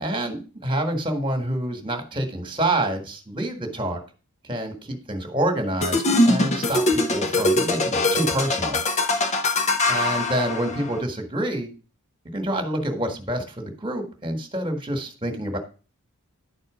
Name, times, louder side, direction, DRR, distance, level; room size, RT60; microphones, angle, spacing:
voice 1, 0.0-4.0 4.4-8.8 9.1-9.2 9.9-11.7 12.2-15.6, right 1 dB, 20° right, 4 dB, 1.6 m, -27 dB
sound 1, 5.8-11.0, left 2 dB, 30° left, 0.9 m, -22 dB
11.0 x 4.3 x 5.0 m, 0.36 s
head